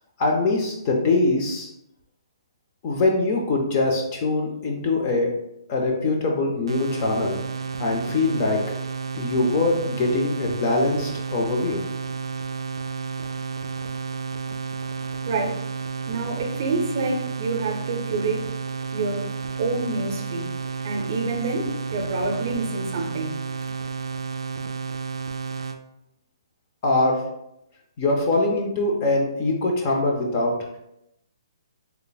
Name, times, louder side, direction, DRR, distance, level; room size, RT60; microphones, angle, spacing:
voice 1, 0.2-1.7 2.8-5.4 5.7-7.4 7.8-8.7 9.2-11.8 26.8-27.2 28.0-30.6, left 2 dB, 20° left, 0 dB, 0.4 m, -23 dB
sound 1, 6.7-25.8, right 5 dB, 90° right, 0.3 m, -31 dB
voice 2, 15.2-15.6 16.1-18.4 18.9-19.3 19.6-20.5 20.8-23.4, right 3 dB, 35° right, 2 dB, 0.5 m, -27 dB
3.3 x 2.0 x 3.9 m, 0.83 s
hypercardioid pair, 175°, 3 cm